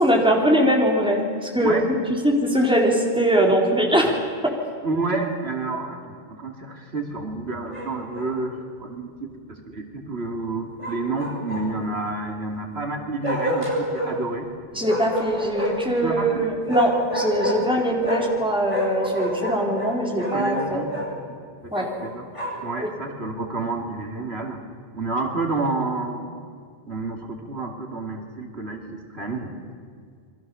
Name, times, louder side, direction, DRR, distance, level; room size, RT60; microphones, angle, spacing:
voice 1, 0.0-2.0 2.2-4.6 14.7-20.8 21.7-21.9 22.8-22.9, equal, 5° right, -1 dB, 3.9 m, -21 dB
voice 2, 4.8-14.5 16.0-16.5 17.8-17.9 20.3-21.0 21.6-22.3 22.6-24.6 24.9-26.2 26.9-29.5, right 3 dB, 85° right, 2 dB, 3.0 m, -29 dB
Bark, 7.7-8.3 10.8-11.9 13.2-14.1 14.8-15.9 16.7-18.4 18.7-21.1 21.7-22.7, equal, 30° left, 5.9 m, -28 dB
28.0 x 23.0 x 7.0 m, 2.1 s
omnidirectional pair, 1.1 m